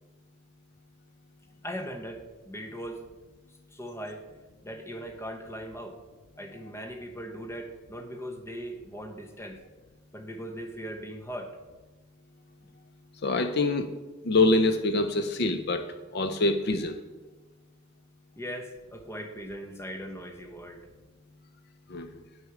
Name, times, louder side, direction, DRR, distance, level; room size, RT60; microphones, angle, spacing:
voice 1, 1.6-3.0 3.7-4.3 4.6-6.0 6.4-9.6 10.1-11.6 18.4-20.9, equal, 15° left, 4 dB, 0.8 m, -39 dB
voice 2, 13.2-13.9 14.2-17.0 21.9-22.1, left 2 dB, 50° left, 8 dB, 0.5 m, -25 dB
9.4 x 6.2 x 4.8 m, 1.2 s
head